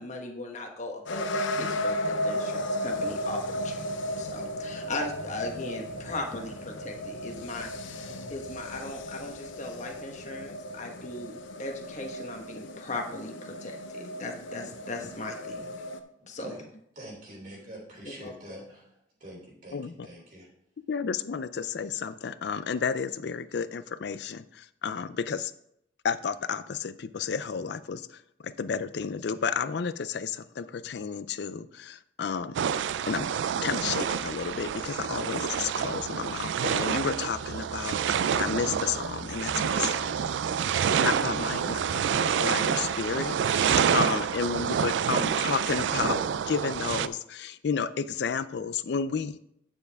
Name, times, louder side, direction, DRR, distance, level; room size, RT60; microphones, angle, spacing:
voice 1, 0.0-3.9 4.2-8.0 8.3-15.7 16.3-16.6 18.0-18.6, left 2 dB, 40° left, 2 dB, 1.2 m, -38 dB
sound 1, 1.1-16.0, left 1 dB, 90° left, 0.7 m, -35 dB
sound 2, 1.5-11.5, right 1 dB, 20° right, 1.3 m, -52 dB
voice 2, 16.2-16.6 16.9-18.9 19.2-20.5, right 1 dB, 45° right, -3 dB, 3.2 m, -45 dB
voice 3, 19.7-20.1 20.9-25.5 26.0-33.3 33.6-40.2 41.0-49.4, left 6 dB, 60° left, 13 dB, 0.4 m, -32 dB
sound 3, 32.5-47.1, right 7 dB, 75° right, 0.3 m, -28 dB
9.3 x 7.1 x 3.5 m, 0.75 s
head